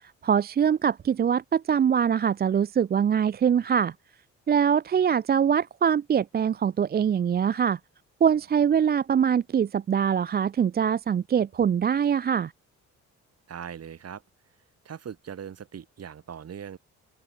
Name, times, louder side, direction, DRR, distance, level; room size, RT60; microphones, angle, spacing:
voice 1, 0.2-3.9 4.5-7.8 8.2-12.5, right 8 dB, 35° right, 0.5 m, -23 dB
voice 2, 13.5-14.2 14.8-16.8, right 8 dB, 55° right, 7.4 m, -40 dB
open air
cardioid pair, 90°, 30 cm